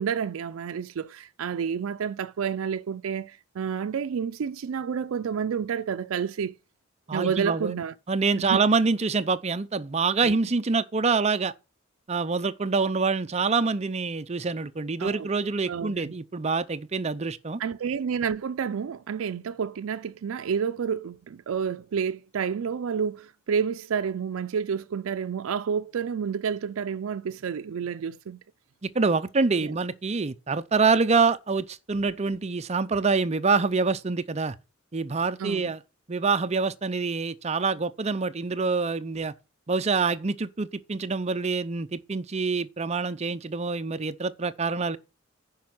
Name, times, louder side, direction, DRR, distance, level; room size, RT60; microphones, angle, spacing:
voice 1, 0.0-6.5 7.1-7.9 8.4-8.6 10.2-10.3 15.0-15.3 15.7-16.1 17.6-28.4 29.6-29.7 35.4-35.7, right 7 dB, 85° right, 0.4 m, -30 dB
voice 2, 7.1-7.8 8.1-11.5 12.1-17.6 28.8-34.5 34.9-35.8 36.1-39.3 39.7-45.0, right 4 dB, 30° right, 0.6 m, -26 dB
10.5 x 5.2 x 6.0 m
head